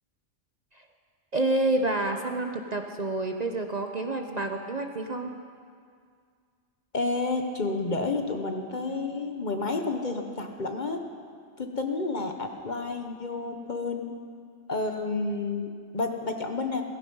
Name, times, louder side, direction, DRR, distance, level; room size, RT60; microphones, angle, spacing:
voice 1, 1.3-5.3, right 2 dB, 40° right, 4 dB, 0.8 m, -28 dB
voice 2, 6.9-11.1 11.6-14.2 14.7-16.8, left 3 dB, 40° left, 4 dB, 1.1 m, -30 dB
17.0 x 15.5 x 5.5 m, 2.1 s
omnidirectional pair, 1.3 m